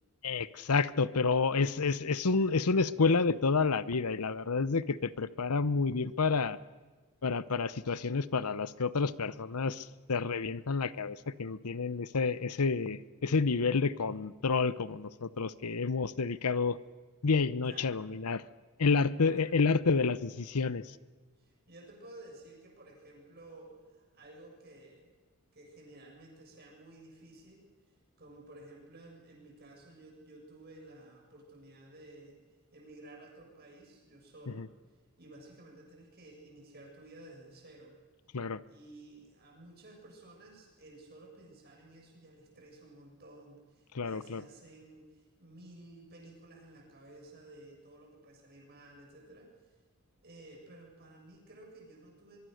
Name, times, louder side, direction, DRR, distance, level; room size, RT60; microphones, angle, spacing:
voice 1, 0.2-6.6 7.2-16.8 17.2-18.4 18.8-20.8 34.6-34.7 38.3-38.6 43.9-44.4, left 4 dB, 85° left, 16 dB, 0.8 m, -29 dB
voice 2, 17.6-18.0 19.2-19.5 21.4-25.1 25.5-27.7 28.2-32.4 32.7-34.7 35.2-37.9 38.7-49.7 50.2-52.4, right 2 dB, 45° right, 1 dB, 7.1 m, -53 dB
24.0 x 23.0 x 6.6 m, 1.3 s
head